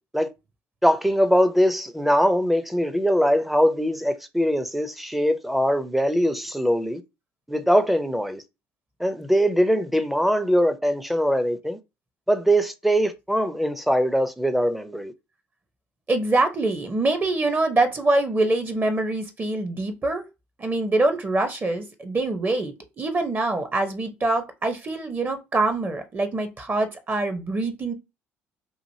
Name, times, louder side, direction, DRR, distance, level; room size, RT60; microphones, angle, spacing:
voice 1, 0.8-7.0 7.5-8.4 9.0-11.8 12.3-15.1, equal, ahead, 0.6 m, -22 dB
voice 2, 16.1-20.2 20.6-27.9, right 2 dB, 30° right, 0.8 m, -24 dB
2.9 x 2.5 x 2.7 m
hypercardioid pair, 65°, 7 cm